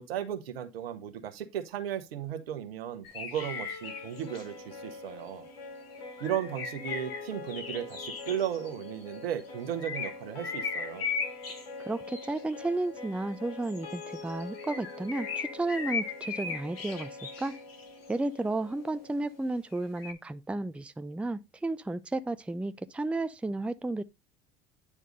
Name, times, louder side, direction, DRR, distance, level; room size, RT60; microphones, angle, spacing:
voice 1, 0.0-5.5 6.2-11.1, right 10 dB, 80° right, 1.2 m, -35 dB
sound 1, 3.0-4.5 5.5-9.4 9.8-12.7 13.6-18.1 19.7-20.1, left 5 dB, 75° left, 1.7 m, -38 dB
sound 2, 3.4-19.4, left 3 dB, 60° left, 3.0 m, -45 dB
voice 2, 11.8-17.1 17.4-17.6 18.1-24.0, right 2 dB, 5° right, 0.5 m, -33 dB
9.6 x 3.6 x 5.2 m
hypercardioid pair, 65°, 30 cm